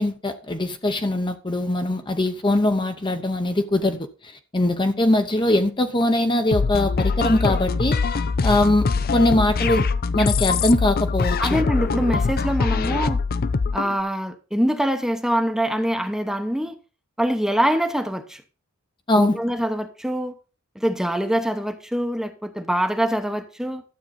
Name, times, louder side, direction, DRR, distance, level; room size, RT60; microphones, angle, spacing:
voice 1, 0.0-8.9 9.1-9.9 10.1-11.6 19.1-19.4, left 1 dB, 20° left, 0.8 m, -22 dB
sound 1, 6.5-13.9, left 4 dB, 45° left, 0.5 m, -23 dB
voice 2, 11.4-13.2 13.7-16.8 17.2-18.4 19.2-20.3 20.7-23.8, equal, ahead, 0.9 m, -24 dB
12.5 x 7.6 x 4.2 m
head